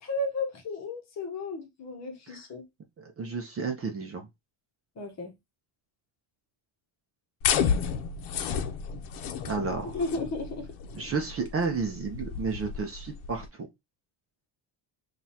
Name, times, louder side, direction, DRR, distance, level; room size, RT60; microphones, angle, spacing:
voice 1, 0.0-2.7 5.0-5.3 9.9-10.7, left 2 dB, 35° left, 0.9 m, -34 dB
voice 2, 3.0-4.3 9.5-10.0 10.9-13.7, right 4 dB, 30° right, 0.6 m, -32 dB
sound 1, 7.4-13.5, left 7 dB, 75° left, 0.8 m, -31 dB
6.0 x 2.5 x 2.8 m
cardioid pair, 155°, 48 cm